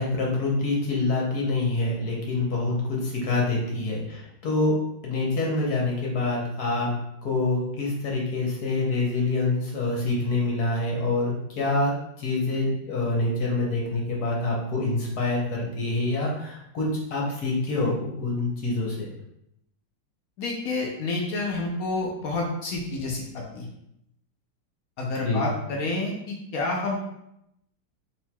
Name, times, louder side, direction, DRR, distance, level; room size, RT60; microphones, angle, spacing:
voice 1, 0.0-4.8 5.0-6.9 7.2-11.9 12.2-19.1 25.2-25.4, left 2 dB, 60° left, -3 dB, 1.2 m, -26 dB
voice 2, 20.4-23.7 25.0-27.0, left 3 dB, 75° left, -1 dB, 0.8 m, -29 dB
4.4 x 3.8 x 2.2 m, 0.79 s
omnidirectional pair, 2.2 m